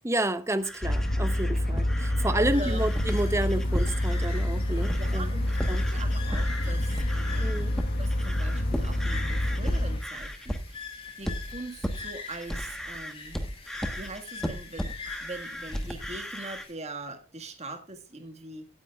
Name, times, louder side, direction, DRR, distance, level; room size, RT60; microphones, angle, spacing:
voice 1, 0.0-5.3 5.7-5.8 7.4-7.8, right 1 dB, 15° right, 0.7 m, -30 dB
sound 1, 0.6-4.5 4.8-5.2 5.5-16.7, equal, ahead, 1.1 m, -36 dB
sound 2, 0.8-10.0, left 1 dB, 45° left, 1.0 m, -27 dB
voice 2, 2.2-2.8 4.7-7.7 8.0-10.9 11.2-13.4 13.9-18.7, right 2 dB, 30° right, 1.6 m, -42 dB
sound 3, 2.4-16.7, left 5 dB, 25° left, 2.2 m, -44 dB
16.5 x 9.7 x 2.3 m
head